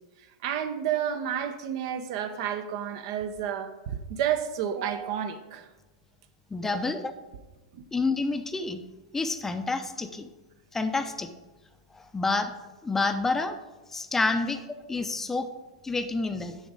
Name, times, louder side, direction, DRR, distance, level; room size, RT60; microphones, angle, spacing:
voice 1, 0.4-5.7 6.6-6.9 7.7-7.8, right 9 dB, 55° right, 9 dB, 0.8 m, -31 dB
voice 2, 6.5-7.1 7.9-8.8 9.1-10.3 10.7-11.3 11.9-12.5 12.8-13.6 13.9-14.6 14.9-15.5 15.8-16.5, left 3 dB, 10° left, 8 dB, 0.6 m, -28 dB
7.6 x 7.0 x 4.9 m, 1.1 s
hypercardioid pair, 105°, 3 cm